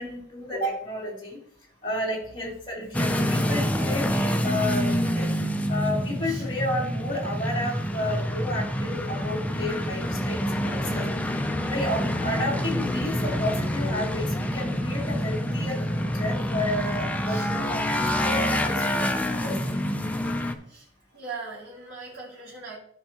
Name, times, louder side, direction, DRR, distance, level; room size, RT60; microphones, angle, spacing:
voice 1, 0.0-1.4 1.8-5.3 5.7-11.0 11.6-19.9, left 1 dB, 25° left, -5 dB, 3.1 m, -32 dB
sound 1, 2.9-20.5, equal, 10° left, 0.6 m, -27 dB
voice 2, 21.1-22.8, right 4 dB, 80° right, -6 dB, 2.5 m, -40 dB
14.0 x 5.3 x 3.0 m, 0.64 s
head